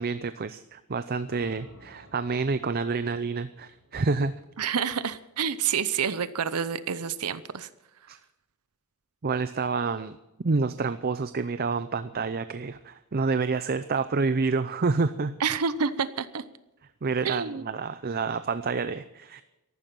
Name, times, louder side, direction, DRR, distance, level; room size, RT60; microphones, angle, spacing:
voice 1, 0.0-4.3 8.1-8.2 9.2-15.4 17.0-19.4, right 4 dB, 45° right, 12 dB, 0.6 m, -28 dB
sound 1, 1.3-5.4, left 1 dB, 70° left, 4.6 m, -55 dB
voice 2, 4.6-7.7 15.4-16.4 17.2-17.6, right 6 dB, 85° right, 14 dB, 0.8 m, -28 dB
14.0 x 12.0 x 7.5 m, 0.98 s
head